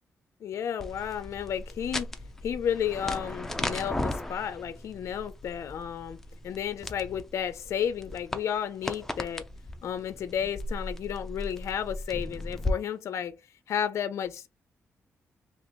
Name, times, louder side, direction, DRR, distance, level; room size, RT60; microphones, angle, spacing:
voice 1, 0.4-2.1 2.4-6.2 6.4-9.5 9.8-13.3 13.7-14.5, left 9 dB, 65° left, 0.4 m, -32 dB
sound 1, 0.8-12.7, left 1 dB, 5° left, 0.5 m, -37 dB
3.0 x 2.9 x 4.3 m
wide cardioid pair, 145°, 5 cm